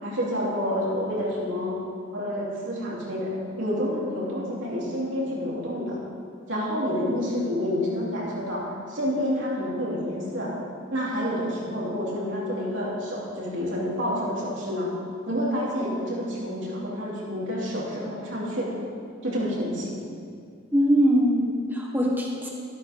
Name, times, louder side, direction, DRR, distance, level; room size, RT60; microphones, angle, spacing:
voice 1, 0.0-1.8 2.1-6.0 6.5-10.5 10.9-14.9 15.3-18.7 19.2-20.0, equal, 65° right, -6 dB, 3.5 m, -28 dB
voice 2, 20.7-22.5, equal, 10° right, -1 dB, 1.4 m, -22 dB
13.0 x 12.5 x 3.8 m, 2.2 s
head